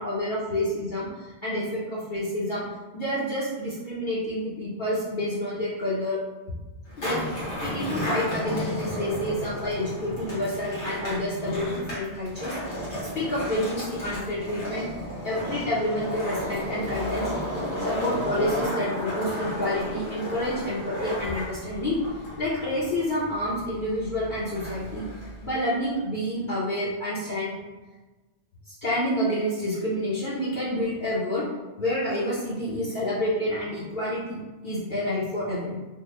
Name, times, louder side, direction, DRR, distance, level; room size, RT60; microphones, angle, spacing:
voice 1, 0.0-2.6 2.9-6.2 7.0-7.2 7.6-12.5 13.0-14.8 15.2-17.3 17.8-22.0 22.4-25.0 25.4-27.5 28.7-31.5 31.8-34.4 34.6-35.8, left 1 dB, 50° left, -9 dB, 0.9 m, -28 dB
Skateboard, 6.9-25.5, equal, 80° left, 1.6 m, -33 dB
3.7 x 2.2 x 3.2 m, 1.2 s
omnidirectional pair, 1.1 m